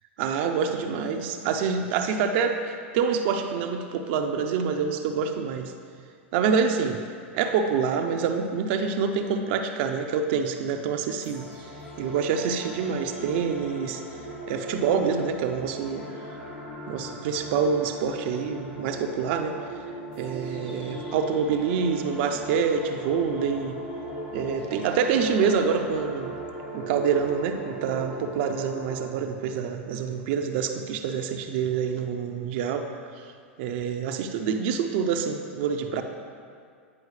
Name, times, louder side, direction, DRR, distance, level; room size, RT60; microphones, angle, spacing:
voice 1, 0.2-5.7 6.3-7.0 7.3-11.5 12.0-14.0 14.5-16.1 16.9-19.6 20.2-23.7 24.3-26.3 26.7-32.9 33.2-33.3 33.6-36.0, right 6 dB, 60° right, 5 dB, 0.5 m, -26 dB
sound 1, 11.2-29.0, right 1 dB, 85° left, 1.7 m, -38 dB
9.6 x 4.6 x 3.2 m, 2.2 s
hypercardioid pair, 100°, 7 cm